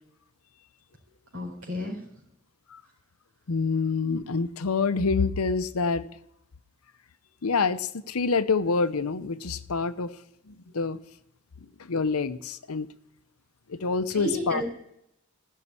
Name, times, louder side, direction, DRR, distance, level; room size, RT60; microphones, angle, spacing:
voice 1, 1.3-2.1 10.7-10.8 11.6-11.7 14.1-14.6, equal, 65° right, 4.4 m, -32 dB
voice 2, 3.5-6.1 7.4-10.2 10.7-11.0 11.9-12.9 13.7-14.6, left 4 dB, 90° left, 0.8 m, -26 dB
15.5 x 6.6 x 9.7 m
head